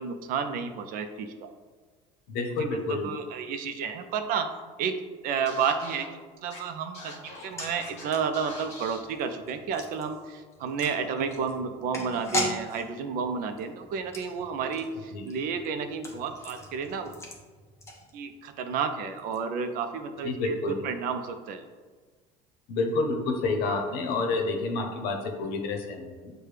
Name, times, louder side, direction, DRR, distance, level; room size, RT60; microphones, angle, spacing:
voice 1, 0.0-1.5 2.6-4.5 4.8-5.0 5.2-6.1 6.4-17.1 18.1-21.6, right 6 dB, 60° right, 7 dB, 0.5 m, -31 dB
voice 2, 2.3-3.1 15.1-15.2 20.2-20.8 22.7-26.3, left 3 dB, 75° left, 3 dB, 0.8 m, -29 dB
Scratching (performance technique), 5.5-6.1 6.5-6.6 6.9-8.0 8.3-9.0, left 2 dB, 40° left, 1.3 m, -43 dB
sound 1, 7.3-18.5 18.8-18.9 19.2-19.4, equal, 15° left, 0.7 m, -39 dB
6.5 x 2.2 x 3.2 m, 1.4 s
cardioid pair, 120°, 16 cm